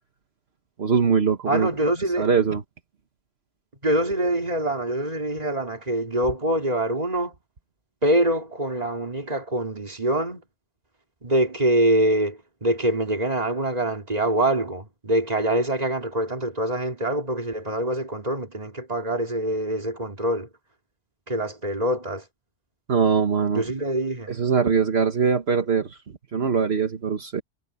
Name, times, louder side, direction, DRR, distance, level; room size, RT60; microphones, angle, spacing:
voice 1, 0.8-1.7 2.2-2.6 22.9-23.6 24.3-26.0 26.3-27.4, right 6 dB, 65° right, 1.6 m, -22 dB
voice 2, 1.5-2.3 3.8-7.3 8.0-10.4 11.2-20.5 21.3-22.2 23.5-24.4, right 1 dB, 35° right, 3.1 m, -24 dB
omnidirectional pair, 1.2 m